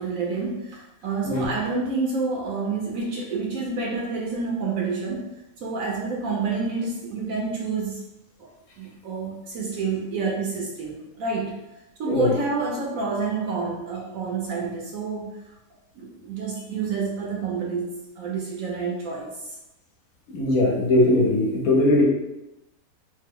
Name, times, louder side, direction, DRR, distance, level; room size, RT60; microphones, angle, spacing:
voice 1, 0.0-5.3 5.6-8.0 8.4-8.5 8.8-11.6 12.0-15.4 16.0-19.3, right 4 dB, 65° right, -2 dB, 0.9 m, -28 dB
voice 2, 20.3-22.0, left 1 dB, 65° left, -2 dB, 1.1 m, -20 dB
3.2 x 2.1 x 3.6 m, 0.92 s
omnidirectional pair, 1.7 m